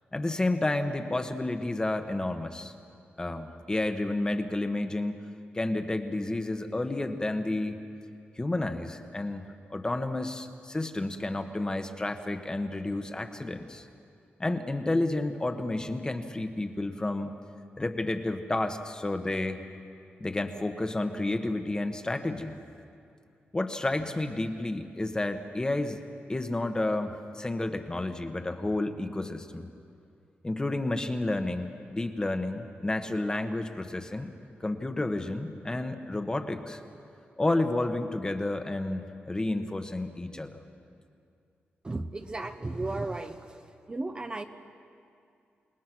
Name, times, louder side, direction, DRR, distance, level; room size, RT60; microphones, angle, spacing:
voice 1, 0.1-2.7 3.2-5.2 5.5-7.8 8.4-9.4 9.7-13.9 14.4-17.3 17.8-19.6 20.2-22.6 23.5-26.0 26.3-29.7 30.4-34.3 34.6-36.8 37.4-40.6, left 2 dB, 20° left, 7 dB, 1.2 m, -31 dB
voice 2, 41.8-43.6 43.9-44.4, right 2 dB, 25° right, 7 dB, 0.9 m, -34 dB
28.5 x 19.5 x 6.1 m, 2.4 s
wide cardioid pair, 110°, 4 cm